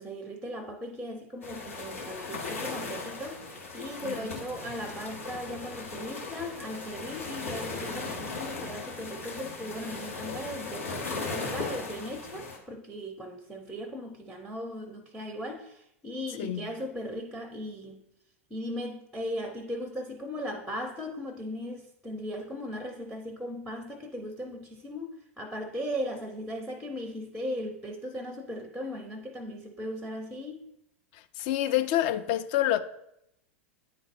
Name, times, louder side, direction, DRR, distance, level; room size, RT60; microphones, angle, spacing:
voice 1, 0.0-3.4 3.7-18.0 18.5-30.6, equal, 5° right, 0.6 m, -38 dB
sound 1, 1.4-12.6, left 3 dB, 75° left, 1.3 m, -37 dB
voice 2, 4.0-4.4 16.4-16.8 31.1-32.8, left 13 dB, 45° left, 0.4 m, -28 dB
9.4 x 3.9 x 2.5 m
figure-of-eight pair, 90°, 7 cm